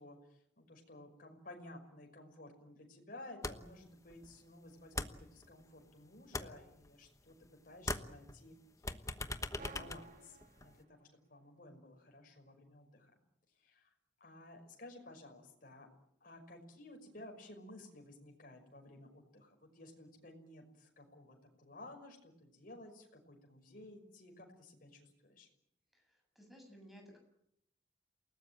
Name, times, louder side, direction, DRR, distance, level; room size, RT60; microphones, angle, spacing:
voice 1, 0.0-7.4 7.6-13.1 13.6-13.9 14.2-15.9 16.2-25.5, left 1 dB, 50° left, 2 dB, 5.8 m, -55 dB
sound 1, 3.4-3.8 4.1-5.9 6.2-7.5 7.8-10.8, left 2 dB, 15° left, 1.1 m, -42 dB
sound 2, 9.5-11.3, right 3 dB, 45° right, 2.1 m, -55 dB
voice 2, 25.9-27.2, equal, ahead, 3 dB, 7.8 m, -57 dB
29.0 x 18.5 x 8.8 m, 0.77 s
head